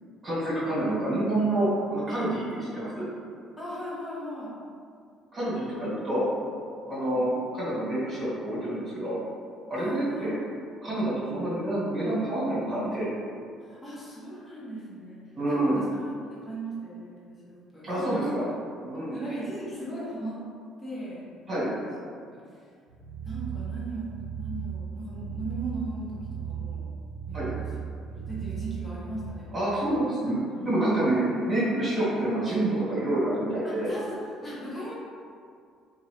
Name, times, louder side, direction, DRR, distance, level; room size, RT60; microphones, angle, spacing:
voice 1, 0.2-3.1 5.3-6.3 6.9-9.2 9.7-10.3 10.8-13.1 15.3-15.8 17.8-18.4 18.8-19.2 21.5-21.7 27.3-27.5 29.5-33.9, right 1 dB, 30° right, -10 dB, 1.4 m, -27 dB
voice 2, 3.6-4.5 6.9-7.3 9.8-10.4 13.6-15.2 15.5-16.0 16.3-18.4 18.9-20.4 20.8-21.9 22.3-22.6 23.2-24.1 24.3-26.2 26.4-26.9 27.3-27.7 28.1-29.5 30.5-31.2 33.6-34.9, right 1 dB, 20° left, -7 dB, 1.0 m, -38 dB
sound 1, 22.9-29.3, right 8 dB, 55° right, 0.8 m, -36 dB
2.9 x 2.6 x 2.9 m, 2.2 s
cardioid pair, 100°, 0 cm